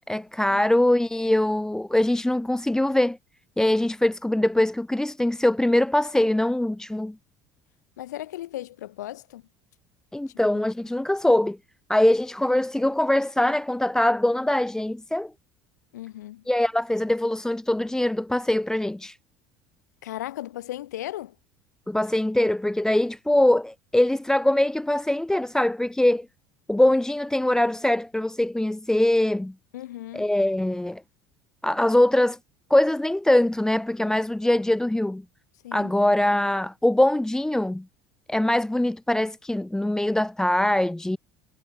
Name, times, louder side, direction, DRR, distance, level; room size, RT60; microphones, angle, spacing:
voice 1, 0.1-3.2 3.6-7.2 10.1-11.6 11.9-15.3 16.5-19.2 21.9-26.3 26.7-29.5 30.1-31.0 31.6-32.4 32.7-35.2 35.7-37.9 38.3-41.2, left 1 dB, 5° left, 1.1 m, -22 dB
voice 2, 8.0-9.4 15.9-16.4 20.0-21.4 29.7-30.2 35.6-35.9, left 14 dB, 90° left, 4.4 m, -36 dB
hypercardioid pair, 80°, 9 cm